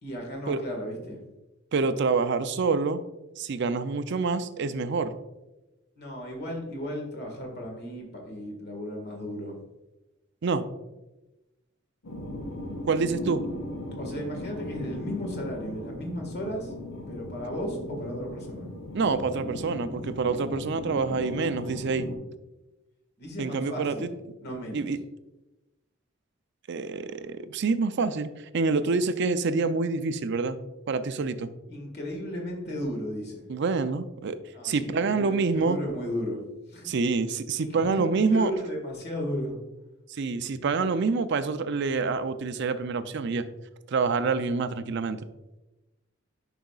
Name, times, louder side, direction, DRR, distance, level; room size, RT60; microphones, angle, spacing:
voice 1, 0.0-1.2 6.0-9.6 14.0-16.7 17.1-18.7 23.2-24.1 24.4-24.9 31.7-33.4 34.5-36.4 36.7-36.9 37.6-39.6, equal, 55° left, 1 dB, 1.8 m, -35 dB
voice 2, 1.7-3.0 3.4-5.1 10.4-10.7 12.9-13.4 18.9-22.1 23.4-24.1 24.7-25.0 26.7-30.6 30.9-31.5 33.5-34.4 34.6-35.8 36.8-38.5 40.1-43.4 43.9-45.2, right 4 dB, 60° right, 11 dB, 0.4 m, -27 dB
sound 1, 12.0-22.1, left 1 dB, 80° left, 1.2 m, -38 dB
10.0 x 5.0 x 2.4 m, 1.0 s
head